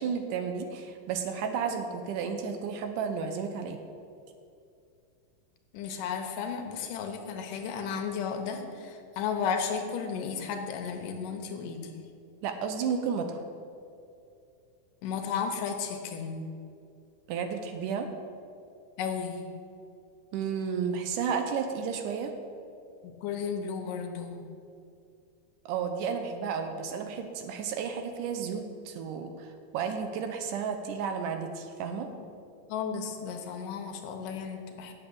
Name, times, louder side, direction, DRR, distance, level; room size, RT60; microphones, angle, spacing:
voice 1, 0.0-3.8 12.4-13.4 17.3-18.1 20.3-22.3 25.7-32.1, right 6 dB, 75° right, 6 dB, 2.1 m, -32 dB
voice 2, 5.7-11.9 15.0-16.5 19.0-19.4 23.0-24.4 32.2-32.3 32.7-34.9, left 6 dB, 80° left, 5 dB, 2.4 m, -34 dB
8.0 x 7.1 x 8.4 m, 2.5 s
omnidirectional pair, 4.0 m